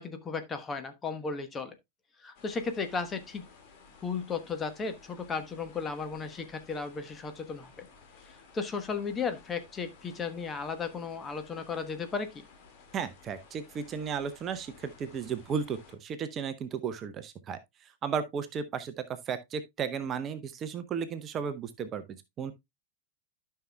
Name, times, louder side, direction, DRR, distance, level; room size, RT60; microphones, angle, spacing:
voice 1, 0.0-1.7 2.2-3.4 4.0-7.9 8.5-12.4, left 5 dB, 20° left, 1.2 m, -35 dB
sound 1, 2.3-15.9, left 5 dB, 45° left, 2.1 m, -56 dB
voice 2, 12.9-22.5, right 6 dB, 30° right, 0.7 m, -35 dB
12.5 x 5.7 x 2.2 m
figure-of-eight pair, 90°, 0 cm